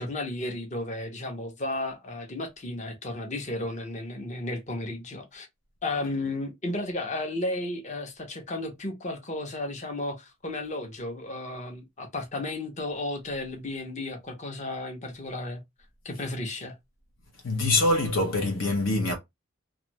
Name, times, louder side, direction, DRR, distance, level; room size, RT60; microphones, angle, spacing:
voice 1, 0.0-5.5 5.8-15.6 16.0-16.7, left 2 dB, 35° left, 0.7 m, -33 dB
voice 2, 17.4-19.1, left 2 dB, 70° left, 0.8 m, -24 dB
2.6 x 2.3 x 2.9 m
head